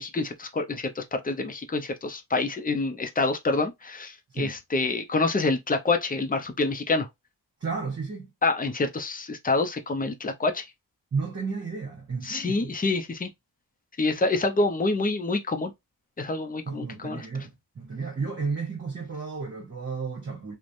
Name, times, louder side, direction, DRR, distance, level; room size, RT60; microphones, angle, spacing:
voice 1, 0.0-7.1 8.4-10.6 12.2-13.3 14.0-15.7 16.2-17.2, left 3 dB, 20° left, 0.5 m, -27 dB
voice 2, 7.6-8.3 11.1-12.7 16.6-20.6, right 4 dB, 35° right, 1.0 m, -33 dB
3.1 x 2.1 x 2.5 m
wide cardioid pair, 95°, 41 cm